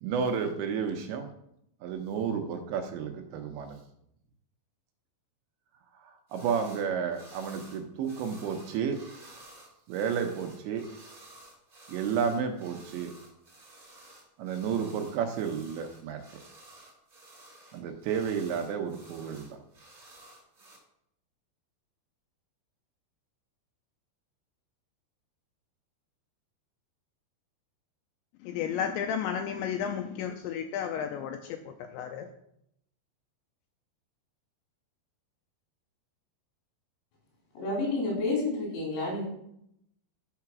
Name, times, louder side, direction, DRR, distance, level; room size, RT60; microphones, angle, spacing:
voice 1, 0.0-1.3 1.8-3.8 6.0-9.0 9.9-10.9 11.9-13.1 14.4-16.2 17.7-19.6, right 7 dB, 75° right, 5 dB, 2.9 m, -31 dB
sound 1, 6.3-6.9 7.1-20.8, right 2 dB, 25° right, 2.0 m, -53 dB
voice 2, 28.4-32.3, left 8 dB, 80° left, 5 dB, 2.7 m, -33 dB
voice 3, 37.5-39.2, left 2 dB, 65° left, -3 dB, 6.1 m, -29 dB
12.5 x 5.8 x 5.9 m, 0.76 s
omnidirectional pair, 5.6 m